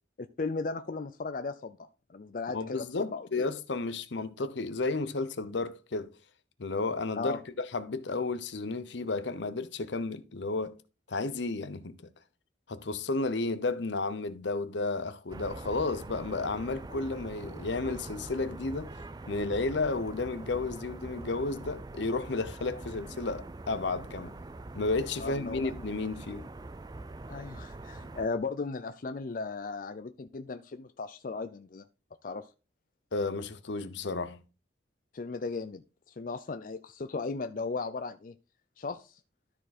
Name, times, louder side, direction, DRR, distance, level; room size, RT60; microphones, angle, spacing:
voice 1, 0.4-3.3 7.1-7.4 25.2-25.7 27.3-31.9 32.2-32.5 35.1-35.8 36.1-38.3 38.8-39.2, left 4 dB, 45° left, 0.5 m, -36 dB
voice 2, 2.5-6.1 6.6-10.8 11.1-12.0 12.7-18.9 19.3-24.4 24.7-26.5 33.1-34.4, left 3 dB, 75° left, 0.8 m, -32 dB
sound 1, 15.3-28.3, right 2 dB, 20° right, 0.4 m, -44 dB
12.5 x 4.5 x 4.2 m
head